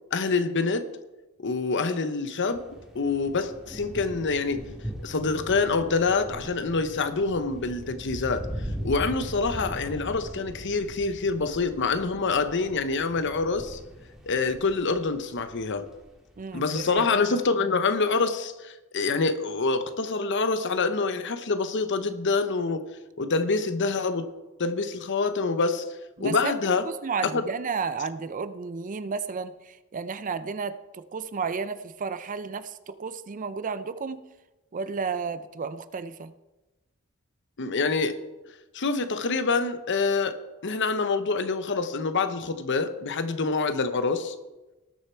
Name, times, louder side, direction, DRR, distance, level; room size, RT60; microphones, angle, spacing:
voice 1, 0.1-0.9 1.4-2.6 2.9-4.6 5.0-8.5 8.8-13.8 14.3-15.9 16.5-22.9 23.2-24.2 24.6-25.8 26.2-26.8 27.3-27.4 37.6-38.2 38.7-40.4 40.6-44.3, left 4 dB, 55° left, 10 dB, 0.8 m, -26 dB
sound 1, 2.5-17.1, equal, ahead, 1.8 m, -40 dB
voice 2, 16.4-17.0 26.2-26.5 26.8-34.2 34.7-36.3, right 5 dB, 35° right, 13 dB, 0.5 m, -32 dB
19.0 x 6.6 x 4.4 m, 1.1 s
head